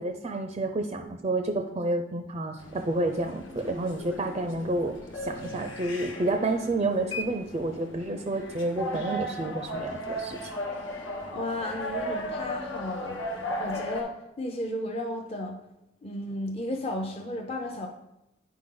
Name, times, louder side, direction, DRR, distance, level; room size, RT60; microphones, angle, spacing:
voice 1, 0.0-10.5, right 2 dB, 30° right, 6 dB, 0.4 m, -30 dB
sound 1, 2.6-14.0, equal, 75° left, 1.1 m, -36 dB
voice 2, 11.3-13.2 13.6-15.6 16.0-17.9, left 1 dB, 30° left, 1 dB, 0.6 m, -33 dB
9.4 x 5.1 x 3.8 m, 0.92 s
head